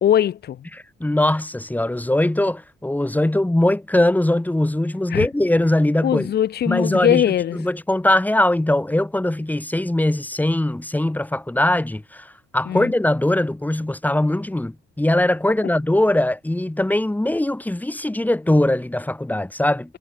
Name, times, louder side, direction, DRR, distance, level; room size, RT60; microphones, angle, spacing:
voice 1, 0.0-0.7 5.1-5.3 6.0-7.6 12.7-12.9, left 10 dB, 55° left, 0.8 m, -20 dB
voice 2, 0.7-6.3 6.7-7.3 7.5-19.9, left 1 dB, 10° left, 2.2 m, -21 dB
cardioid pair, 90°, 20 cm